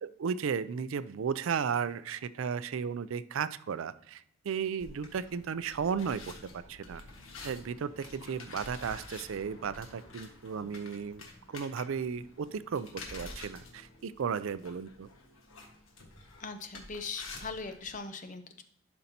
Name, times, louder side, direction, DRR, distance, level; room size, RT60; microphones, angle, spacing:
voice 1, 0.0-7.0 7.4-11.2 11.5-15.1, right 6 dB, 75° right, 15 dB, 0.4 m, -34 dB
sound 1, 4.8-18.0, left 3 dB, 80° left, 1.4 m, -49 dB
voice 2, 16.4-18.6, left 4 dB, 40° left, 8 dB, 0.6 m, -40 dB
11.5 x 5.2 x 2.8 m, 0.71 s
head